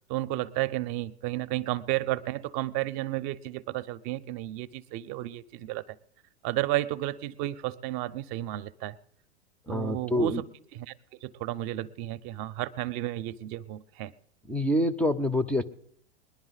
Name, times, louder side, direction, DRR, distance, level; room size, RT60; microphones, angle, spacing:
voice 1, 0.1-6.0 6.4-9.0 9.7-10.5 10.7-10.9 11.2-14.1, right 15 dB, 40° right, 0.6 m, -32 dB
voice 2, 9.7-10.4 14.5-15.6, left 1 dB, 5° left, 0.4 m, -26 dB
20.5 x 11.0 x 4.0 m
hypercardioid pair, 100°, 33 cm